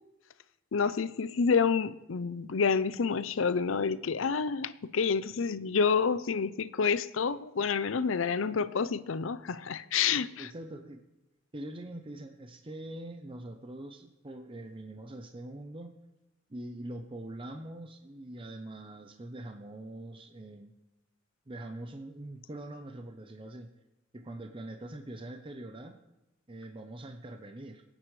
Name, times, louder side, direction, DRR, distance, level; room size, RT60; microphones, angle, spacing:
voice 1, 0.7-10.5, left 5 dB, 85° left, 0.6 m, -28 dB
voice 2, 10.4-11.0 11.5-16.0 16.5-20.8 21.5-23.7 24.1-26.0 26.5-27.8, right 1 dB, 25° right, 0.7 m, -43 dB
23.0 x 9.1 x 3.2 m
head